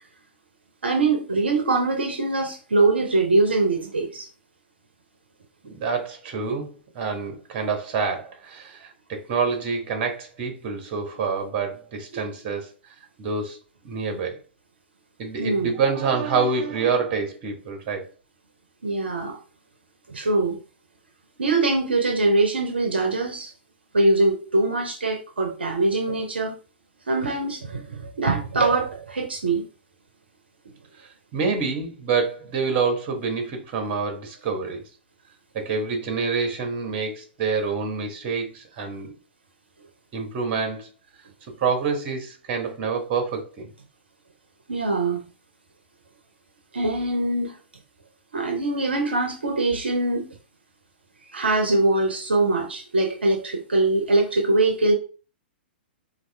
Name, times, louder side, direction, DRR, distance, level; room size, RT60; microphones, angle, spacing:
voice 1, 0.8-4.3 15.4-15.7 18.8-19.4 20.1-20.6 21.4-23.5 23.9-26.5 27.1-29.7 44.7-45.2 46.7-47.6 48.3-50.3 51.3-54.9, right 2 dB, 70° right, 0.6 m, -23 dB
voice 2, 5.7-13.6 13.8-14.4 15.2-18.1 30.9-34.8 35.5-39.1 40.1-40.9 41.6-43.7, right 5 dB, 35° right, 1.1 m, -27 dB
4.1 x 2.5 x 3.3 m
figure-of-eight pair, 110°, 6 cm